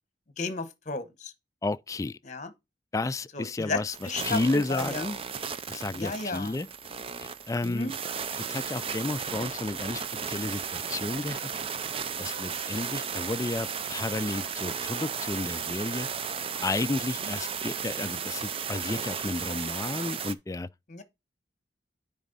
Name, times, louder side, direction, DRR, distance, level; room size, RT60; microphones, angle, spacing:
voice 1, 0.4-1.3 2.2-2.5 3.3-5.1 5.9-6.6 7.6-7.9 17.2-17.3 20.9-21.0, left 3 dB, 45° left, 1.2 m, -34 dB
voice 2, 1.6-2.2 2.9-5.2 5.7-6.7 7.2-7.9 8.5-10.0 10.3-11.4 12.2-16.1 16.6-20.7, left 2 dB, 20° left, 0.3 m, -32 dB
sound 1, 3.9-20.3, right 6 dB, 35° right, 0.5 m, -35 dB
9.5 x 4.0 x 4.0 m
head